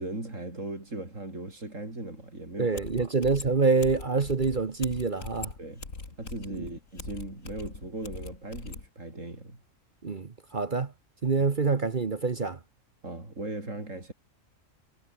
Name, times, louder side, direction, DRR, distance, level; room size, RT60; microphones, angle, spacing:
voice 1, 0.0-3.2 5.6-5.9 6.2-9.6 13.0-14.1, right 2 dB, 75° right, 6.4 m, -38 dB
sound 1, 2.5-2.6 2.7-8.9, left 3 dB, 90° left, 3.6 m, -41 dB
voice 2, 2.6-5.5 10.0-10.9 11.2-12.6, right 4 dB, 40° right, 1.3 m, -26 dB
omnidirectional pair, 1.3 m